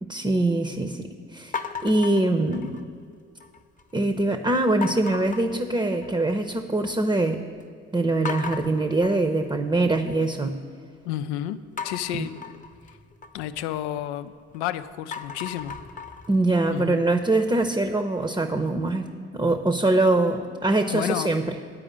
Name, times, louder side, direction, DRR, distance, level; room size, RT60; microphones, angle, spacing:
voice 1, 0.0-1.5 1.8-2.8 3.9-7.4 7.9-10.6 12.1-12.3 16.3-19.1 19.3-21.6, right 2 dB, 15° right, 6 dB, 0.7 m, -23 dB
sound 1, 1.5-3.0 3.4-3.9 4.8-6.3 6.7-7.2 7.6-7.7 8.2-10.4 11.8-14.6 15.0-17.9, left 5 dB, 25° left, 0.8 m, -37 dB
voice 2, 11.0-12.3 13.3-15.8 16.7-17.0 20.9-21.4, left 12 dB, 80° left, 12 dB, 0.5 m, -31 dB
9.6 x 5.0 x 7.3 m, 2.3 s
hypercardioid pair, 50°, 33 cm